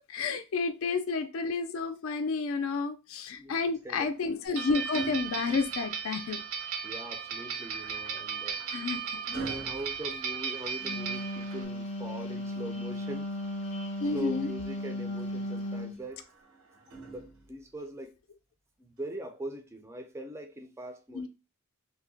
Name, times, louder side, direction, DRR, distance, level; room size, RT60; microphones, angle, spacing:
voice 1, 0.1-6.4 8.7-9.0 14.0-14.5 21.1-21.3, left 4 dB, 65° left, 0.4 m, -31 dB
sound 1, 3.8-6.2 7.8-11.0 12.8-13.9 15.9-17.8 19.0-19.2, right 3 dB, 90° right, 1.0 m, -45 dB
sound 2, 4.5-11.6, right 6 dB, 70° right, 0.5 m, -36 dB
voice 2, 6.8-8.9 9.4-13.3 14.0-16.2 17.1-18.1 18.8-21.3, right 1 dB, 10° right, 0.4 m, -41 dB
Wind instrument woodwind instrument, 10.7-16.0, left 1 dB, 30° left, 0.7 m, -36 dB
2.7 x 2.1 x 3.8 m
head